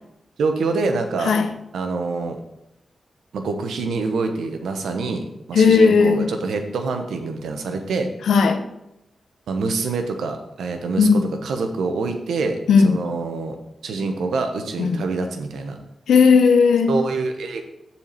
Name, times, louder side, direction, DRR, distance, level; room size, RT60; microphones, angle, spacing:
voice 1, 0.4-1.3 1.7-2.4 3.3-8.1 9.5-12.6 12.8-13.6 13.8-15.8 16.9-17.6, right 3 dB, 90° right, 0.9 m, -25 dB
voice 2, 5.5-6.3 8.3-8.6 11.0-11.3 12.7-13.0 14.8-15.0 16.1-16.9, left 5 dB, 90° left, 0.8 m, -15 dB
7.2 x 4.4 x 6.7 m
cardioid pair, 50°, 0 cm